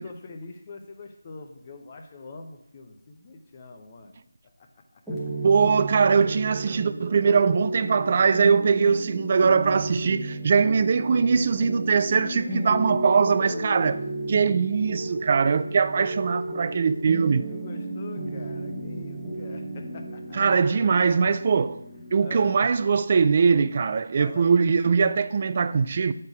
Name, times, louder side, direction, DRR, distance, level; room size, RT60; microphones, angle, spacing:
voice 1, 0.0-4.2 4.4-4.7 7.1-7.5 12.3-13.0 17.5-20.9 22.2-22.6 24.2-24.7, left 3 dB, 25° left, 0.8 m, -44 dB
sound 1, 5.1-24.6, right 2 dB, ahead, 1.1 m, -33 dB
voice 2, 5.4-14.0 14.3-17.4 20.3-21.8 22.1-26.1, right 5 dB, 35° right, 0.3 m, -21 dB
8.1 x 4.4 x 4.9 m
figure-of-eight pair, 165°, 0 cm